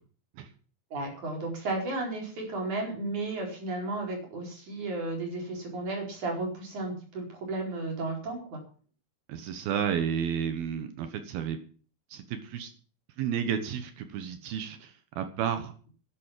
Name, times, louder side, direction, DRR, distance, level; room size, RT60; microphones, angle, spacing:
voice 1, 0.9-8.6, right 2 dB, 50° right, 1 dB, 5.9 m, -33 dB
voice 2, 9.3-11.6 12.1-12.7 13.2-15.7, right 8 dB, 75° right, 8 dB, 3.1 m, -32 dB
12.0 x 11.0 x 7.4 m, 0.42 s
omnidirectional pair, 4.5 m